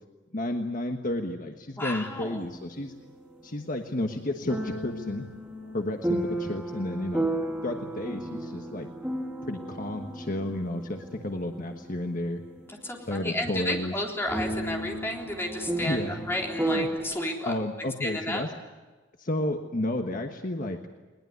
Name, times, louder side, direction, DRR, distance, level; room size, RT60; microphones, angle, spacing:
voice 1, 0.3-2.9 3.4-5.3 5.7-7.3 7.6-8.9 9.4-12.4 13.1-13.9 15.8-16.2 16.7-16.9 17.4-18.5 19.2-20.8, left 1 dB, 45° left, 5 dB, 1.4 m, -31 dB
voice 2, 1.8-2.5 12.7-17.5 18.0-18.4, left 1 dB, 10° left, 0 dB, 3.7 m, -32 dB
sound 1, 2.2-3.5 4.5-13.2 13.6-13.7 14.3-17.0, right 1 dB, 5° right, 3.8 m, -34 dB
21.5 x 20.5 x 9.5 m, 1.3 s
head